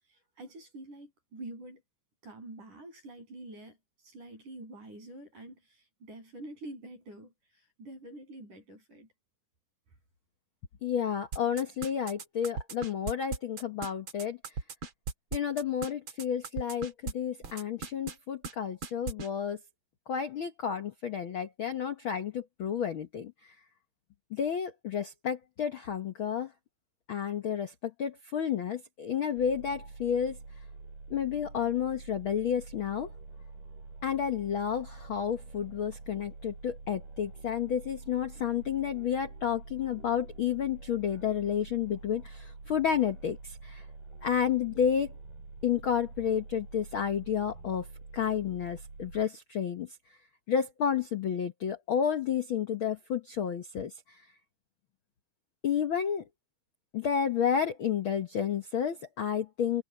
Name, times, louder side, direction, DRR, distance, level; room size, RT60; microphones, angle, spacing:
voice 1, 0.1-1.8 2.2-3.8 4.0-9.1, right 1 dB, 65° right, 9.4 m, -47 dB
voice 2, 10.8-14.4 15.3-19.6 20.1-23.3 24.3-26.5 27.1-30.4 31.1-33.1 34.0-43.8 44.2-45.1 45.6-47.9 48.1-49.9 50.5-53.9 55.6-56.2 56.9-59.8, left 8 dB, 60° left, 1.3 m, -31 dB
sound 1, 11.3-17.1 17.4-18.2 18.4-18.5 18.8-19.3, right 5 dB, 40° right, 2.4 m, -36 dB
sound 2, 29.4-49.3, right 3 dB, 85° right, 9.0 m, -47 dB
omnidirectional pair, 3.9 m